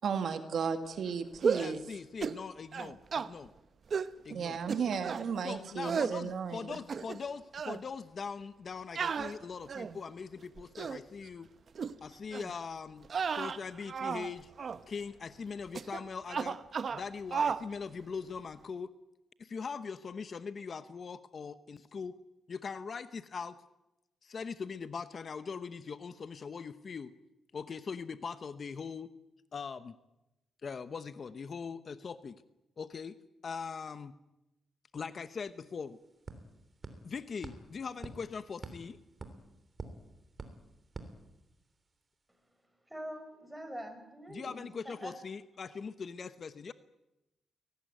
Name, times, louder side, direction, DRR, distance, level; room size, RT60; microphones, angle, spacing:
voice 1, 0.0-2.0 4.3-6.8, right 6 dB, 65° right, 8 dB, 1.9 m, -34 dB
sound 1, 1.4-1.8 2.2-2.4 2.7-3.3 3.9-4.1 4.7-5.3 5.8-6.2 6.7-7.3 7.5-7.8 9.0-10.0 10.6-11.0 11.8-11.9 12.3-12.5 13.0-14.3 14.6-14.8 15.7-16.0 16.3-17.0 17.3-17.6, right 6 dB, 50° right, 0.9 m, -33 dB
voice 2, 1.5-3.5 4.2-4.6 5.4-11.5 12.0-14.5 14.9-16.6 16.9-18.9 19.4-22.1 22.5-23.6 24.2-27.1 27.5-29.1 29.5-30.0 30.6-32.4 32.8-33.2 33.4-34.1 34.9-36.0 37.0-39.0 44.3-46.7, left 5 dB, 45° left, 12 dB, 1.0 m, -41 dB
sound 2, 35.1-35.2 35.5-41.9, right 3 dB, 30° right, 3.3 m, -49 dB
voice 3, 42.9-45.1, equal, 5° right, 6 dB, 5.8 m, -44 dB
23.0 x 18.5 x 9.4 m, 0.95 s
cardioid pair, 100°, 0 cm